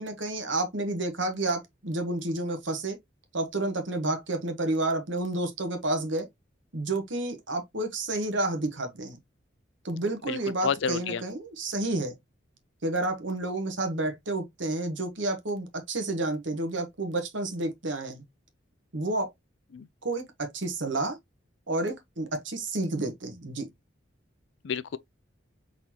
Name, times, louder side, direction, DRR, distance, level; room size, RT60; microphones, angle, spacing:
voice 1, 0.0-3.0 3.3-6.3 6.7-9.2 9.8-12.1 12.8-18.2 18.9-19.3 20.0-21.2 21.7-23.7, right 2 dB, 70° right, 1.3 m, -30 dB
voice 2, 10.3-11.2 19.7-19.9 24.6-25.0, left 6 dB, 70° left, 0.4 m, -30 dB
4.1 x 3.9 x 2.9 m
head